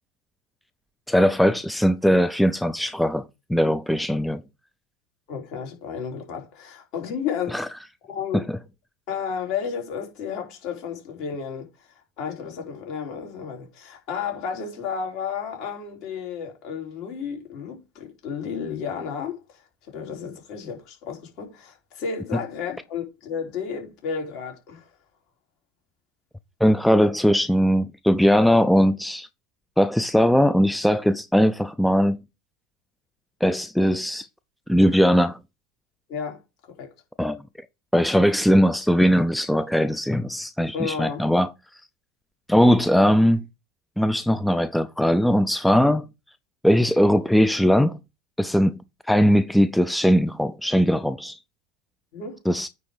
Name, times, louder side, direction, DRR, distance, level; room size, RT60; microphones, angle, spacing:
voice 1, 1.1-4.4 7.5-7.7 8.3-8.6 26.6-29.3 29.8-32.2 33.4-34.3 34.7-35.4 37.2-37.4 37.9-41.5 42.5-43.4 44.0-46.1 46.6-48.0 48.4-48.8 49.1-51.4 52.5-52.7, equal, 5° left, 0.5 m, -20 dB
voice 2, 5.3-7.6 8.1-8.4 9.1-11.7 12.2-19.6 19.9-24.9 36.1-36.4 36.8-36.9 40.7-41.2 52.1-52.4, left 6 dB, 60° left, 3.3 m, -32 dB
9.5 x 3.6 x 4.8 m
hypercardioid pair, 85°, 0 cm